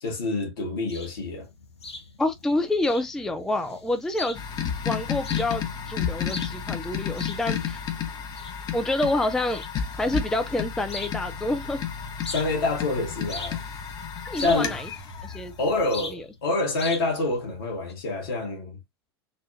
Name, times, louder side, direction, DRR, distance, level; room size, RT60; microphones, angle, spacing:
voice 1, 0.0-1.5 12.3-13.6 14.3-14.7 15.6-18.8, left 2 dB, 60° left, 1.7 m, -27 dB
sound 1, 0.9-17.9, left 3 dB, 80° left, 1.0 m, -43 dB
voice 2, 2.2-4.4 4.9-7.8 8.7-9.6 10.0-11.8 14.2-14.9 15.2-15.5 16.1-16.2, left 2 dB, 5° left, 0.4 m, -27 dB
sound 2, 4.3-16.1, left 8 dB, 30° left, 0.8 m, -32 dB
4.0 x 2.4 x 2.5 m
figure-of-eight pair, 90°, 14 cm